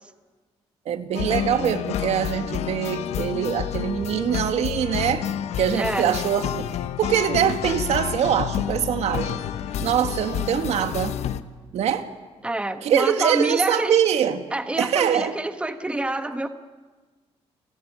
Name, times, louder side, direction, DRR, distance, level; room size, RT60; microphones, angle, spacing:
voice 1, 0.9-5.3 5.6-6.7 7.0-9.4 9.8-11.2 11.7-12.1 12.8-14.4 14.8-15.3, right 9 dB, 75° right, 8 dB, 1.8 m, -23 dB
sound 1, 1.1-11.4, left 10 dB, 80° left, 1.0 m, -29 dB
voice 2, 5.8-6.2 12.4-14.0 14.5-16.5, right 2 dB, 10° right, 8 dB, 1.3 m, -26 dB
30.0 x 16.0 x 9.9 m, 1.4 s
cardioid pair, 125°, 11 cm